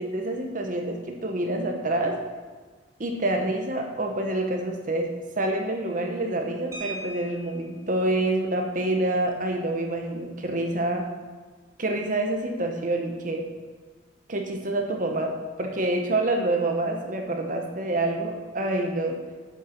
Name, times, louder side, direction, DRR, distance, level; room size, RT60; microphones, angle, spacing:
voice 1, 0.0-2.2 3.0-11.1 11.8-13.5 14.3-15.3 15.6-19.2, right 2 dB, 45° right, 3 dB, 1.0 m, -27 dB
sound 1, 6.7-7.8 9.2-9.4 9.7-9.9 10.3-10.6, right 2 dB, 15° right, 1.8 m, -40 dB
7.9 x 6.6 x 5.9 m, 1.4 s
head